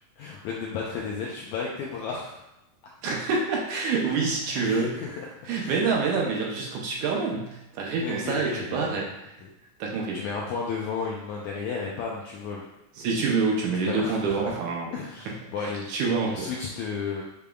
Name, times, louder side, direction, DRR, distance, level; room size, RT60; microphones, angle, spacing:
voice 1, 0.2-2.4 2.8-2.9 4.6-5.3 5.6-5.8 8.0-9.0 10.1-12.6 13.9-14.5 14.9-15.9 16.3-17.2, left 5 dB, 85° left, -3 dB, 1.7 m, -33 dB
voice 2, 3.0-5.0 5.5-9.1 9.8-10.2 13.0-14.9 15.3-16.5, right 4 dB, 80° right, -1 dB, 1.9 m, -27 dB
6.8 x 3.5 x 2.3 m, 0.92 s
omnidirectional pair, 3.9 m